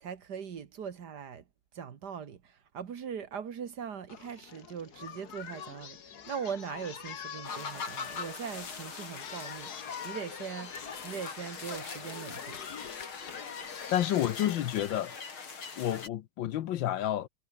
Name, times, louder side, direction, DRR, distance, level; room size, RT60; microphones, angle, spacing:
voice 1, 0.0-1.4 1.7-6.0 6.3-12.6, right 7 dB, 55° right, 1.9 m, -40 dB
Singing, 4.1-14.0, left 8 dB, 55° left, 1.8 m, -45 dB
sound 1, 7.4-16.1, left 5 dB, 90° left, 4.0 m, -42 dB
voice 2, 13.9-15.1 15.8-17.3, left 12 dB, 70° left, 1.5 m, -30 dB
omnidirectional pair, 2.2 m